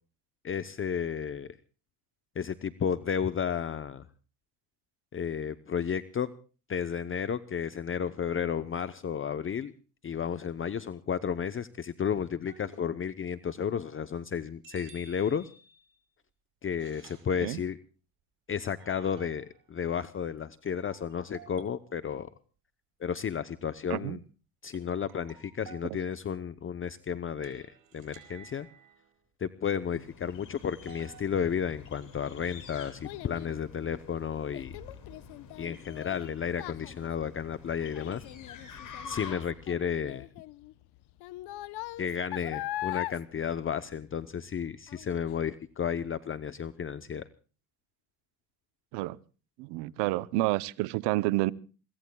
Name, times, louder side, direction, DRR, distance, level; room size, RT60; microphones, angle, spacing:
voice 1, 0.4-1.5 2.4-4.1 5.1-6.3 6.7-9.7 10.0-15.5 16.6-17.8 18.5-22.3 23.0-24.2 24.6-27.7 27.9-28.7 29.4-34.8 35.6-38.2 39.0-40.3 42.0-47.2, left 7 dB, 30° left, 0.8 m, -32 dB
sound 1, 12.4-13.1 14.6-16.0 16.8-17.3 18.8-19.6 20.6-21.9 24.7-25.9 27.4-29.1 30.8-31.2, right 7 dB, 55° right, 4.7 m, -53 dB
sound 2, 29.9-39.7, left 6 dB, 50° left, 6.3 m, -48 dB
Child speech kid speaking, 31.9-44.5 44.9-45.3 45.8-45.9, left 16 dB, 75° left, 0.9 m, -41 dB
voice 2, 49.6-51.5, right 18 dB, 85° right, 0.8 m, -29 dB
26.5 x 23.0 x 2.3 m
supercardioid pair, 90°, 40 cm